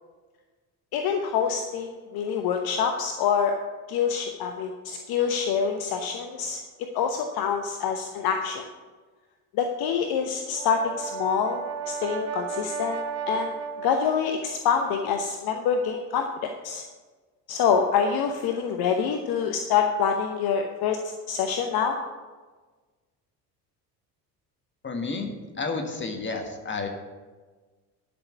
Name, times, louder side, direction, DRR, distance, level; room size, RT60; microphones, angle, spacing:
voice 1, 0.9-3.6 3.9-6.6 6.9-8.6 9.5-13.5 13.8-16.8 17.5-21.0 21.3-22.0, left 7 dB, 50° left, 5 dB, 1.0 m, -26 dB
Brass instrument, 10.4-14.6, right 6 dB, 30° right, 1.0 m, -34 dB
voice 2, 24.8-26.9, left 3 dB, 25° left, 4 dB, 1.8 m, -31 dB
11.0 x 6.2 x 5.9 m, 1.4 s
figure-of-eight pair, 60°, 49 cm